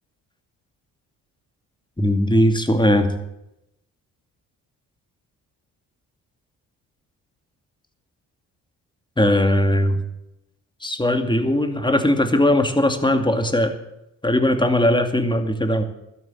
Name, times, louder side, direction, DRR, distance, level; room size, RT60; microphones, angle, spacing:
voice 1, 2.0-3.1 9.2-10.0 10.8-13.7 14.2-15.8, left 1 dB, 10° left, 7 dB, 2.4 m, -19 dB
12.5 x 11.0 x 7.3 m, 0.86 s
supercardioid pair, 65°, 38 cm